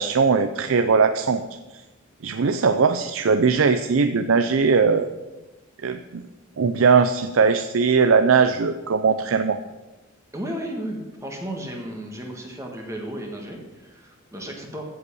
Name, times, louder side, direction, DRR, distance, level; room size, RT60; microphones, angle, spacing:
voice 1, 0.0-1.4 2.2-5.1 5.8-6.2 6.6-9.6, right 5 dB, 80° right, 9 dB, 0.5 m, -19 dB
voice 2, 10.3-14.8, right 1 dB, 15° right, 1 dB, 1.6 m, -34 dB
14.5 x 5.5 x 7.0 m, 1.2 s
head